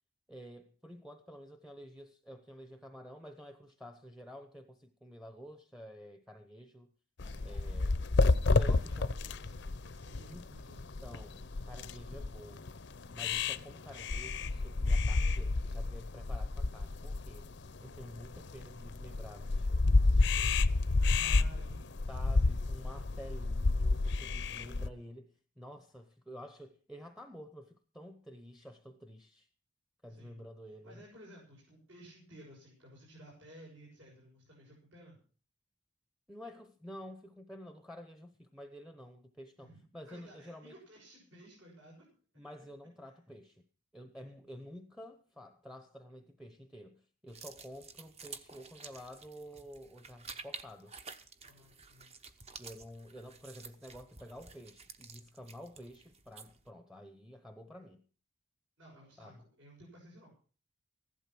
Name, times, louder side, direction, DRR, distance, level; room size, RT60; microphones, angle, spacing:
voice 1, 0.3-6.9 7.4-8.0 8.5-9.2 10.3-10.5 11.0-12.7 13.1-17.5 17.8-20.6 22.1-29.5 30.0-31.0 36.3-40.8 42.4-43.6 43.9-50.9 52.6-58.0 59.2-59.4, equal, ahead, 0.8 m, -50 dB
sound 1, 7.2-24.9, left 3 dB, 55° left, 0.6 m, -30 dB
voice 2, 7.2-8.0 8.4-10.8 21.0-22.0 22.4-22.5 30.1-30.4 30.8-35.2 39.6-39.8 40.1-42.1 51.4-52.1 58.8-60.3, right 1 dB, 65° right, 7.0 m, -55 dB
sound 2, 47.3-56.7, right 5 dB, 30° right, 1.0 m, -51 dB
15.0 x 12.0 x 6.1 m
head